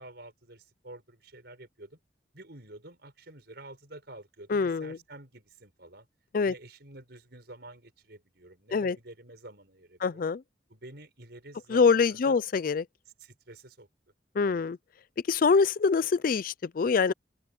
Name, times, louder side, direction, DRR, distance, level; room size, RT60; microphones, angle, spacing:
voice 1, 0.0-2.0 2.3-6.1 6.4-10.3 10.7-12.4 13.2-13.9 14.4-14.6, right 1 dB, 60° right, 6.0 m, -49 dB
voice 2, 4.5-5.0 6.3-6.5 8.7-9.0 10.0-10.4 11.7-12.9 14.4-14.8 15.3-17.1, left 5 dB, 50° left, 0.4 m, -24 dB
open air
head